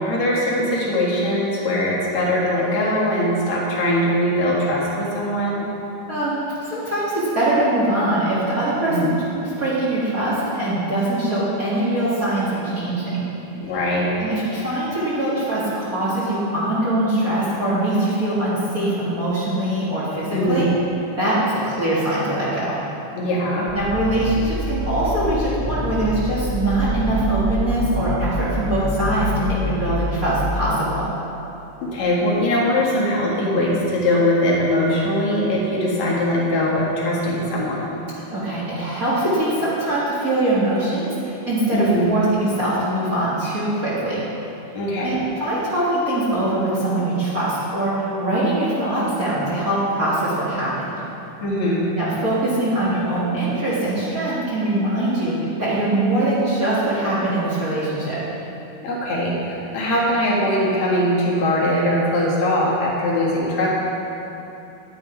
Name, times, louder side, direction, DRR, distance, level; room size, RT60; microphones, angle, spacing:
voice 1, 0.0-5.7 8.8-9.1 13.6-14.1 20.3-20.8 23.1-23.7 31.8-37.9 41.7-42.1 44.7-45.2 51.4-51.9 58.8-63.7, left 1 dB, 65° left, -5 dB, 3.1 m, -21 dB
voice 2, 6.1-9.1 9.6-13.3 14.2-20.7 21.2-22.8 23.7-31.1 38.3-44.3 45.0-50.9 52.0-58.2, right 1 dB, 35° right, -9 dB, 2.0 m, -22 dB
sound 1, 23.7-30.5, equal, 50° left, 0.6 m, -26 dB
10.5 x 9.3 x 4.6 m, 3.0 s
omnidirectional pair, 3.4 m